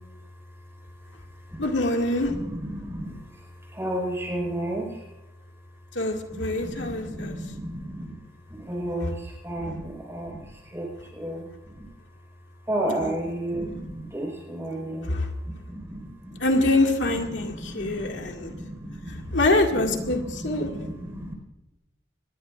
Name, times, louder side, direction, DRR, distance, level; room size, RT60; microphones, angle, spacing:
voice 1, 1.6-2.3 5.9-7.4 12.9-13.1 15.1-15.3 16.4-18.5 19.3-20.7, left 2 dB, 85° left, 2 dB, 2.2 m, -25 dB
voice 2, 2.2-3.4 3.7-5.0 6.3-8.1 8.5-11.5 11.8-11.9 12.7-15.1 15.4-16.4 17.3-19.3 20.0-21.3, right 1 dB, 15° right, 1 dB, 4.9 m, -33 dB
25.0 x 20.0 x 2.6 m, 0.96 s
head